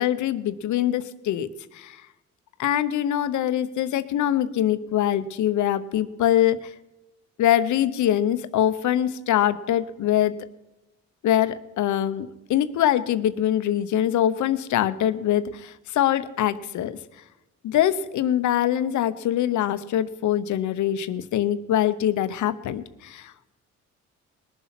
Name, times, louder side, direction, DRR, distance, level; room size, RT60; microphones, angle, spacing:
voice 1, 0.0-1.5 1.7-2.0 2.6-6.7 7.4-10.3 11.2-17.0 17.6-23.6, left 11 dB, 75° left, 13 dB, 0.9 m, -23 dB
20.5 x 7.2 x 5.9 m, 1.0 s
cardioid pair, 90°, 30 cm